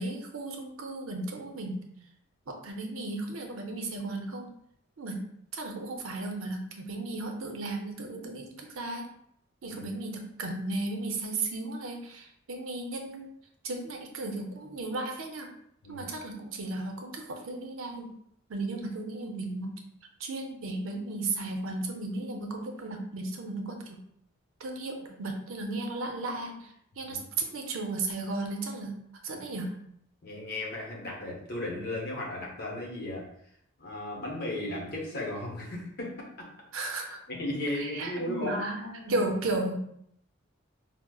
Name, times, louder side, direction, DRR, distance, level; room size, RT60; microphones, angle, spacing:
voice 1, 0.0-1.9 2.5-4.5 5.0-5.2 5.5-9.1 9.6-13.3 13.6-15.5 15.9-18.1 18.5-19.7 20.2-24.0 24.6-29.8 36.7-37.2 37.7-39.7, right 2 dB, 80° right, 3 dB, 0.6 m, -35 dB
voice 2, 30.2-33.3 33.8-36.5 37.3-38.6, left 1 dB, 45° left, -2 dB, 0.8 m, -35 dB
4.9 x 2.0 x 2.3 m, 0.72 s
head